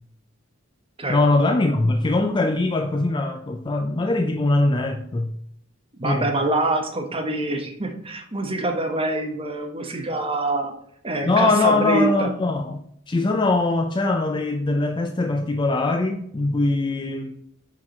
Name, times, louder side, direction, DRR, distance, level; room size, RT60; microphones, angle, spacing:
voice 1, 1.1-5.3 6.0-6.3 11.2-17.3, left 2 dB, 25° left, 0.4 m, -22 dB
voice 2, 6.0-10.7 11.0-12.3, right 2 dB, 25° right, 1.1 m, -25 dB
6.0 x 4.6 x 4.3 m
head